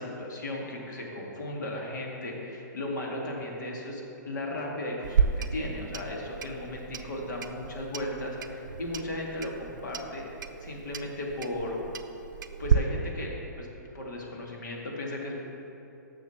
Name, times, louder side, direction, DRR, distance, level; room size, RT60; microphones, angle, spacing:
voice 1, 0.0-10.3 10.6-11.8 12.6-15.4, left 1 dB, 70° left, -1 dB, 1.8 m, -36 dB
Clock, 5.0-12.7, right 7 dB, 80° right, 0.5 m, -32 dB
6.7 x 6.5 x 6.9 m, 2.9 s
hypercardioid pair, 165°, 10 cm